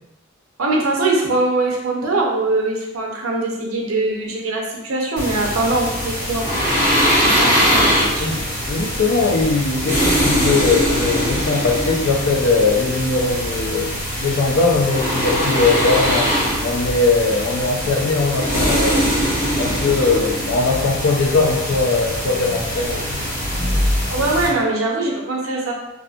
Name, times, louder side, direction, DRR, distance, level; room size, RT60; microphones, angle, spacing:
voice 1, 0.6-6.5 7.2-8.4 20.0-20.3 24.1-25.7, right 2 dB, 85° right, -1 dB, 0.6 m, -22 dB
sound 1, 5.2-24.5, equal, 15° right, 1.4 m, -21 dB
voice 2, 8.2-19.1 19.6-23.2 23.6-23.8, left 3 dB, 70° left, 2 dB, 0.4 m, -20 dB
2.7 x 2.5 x 2.4 m, 0.92 s
head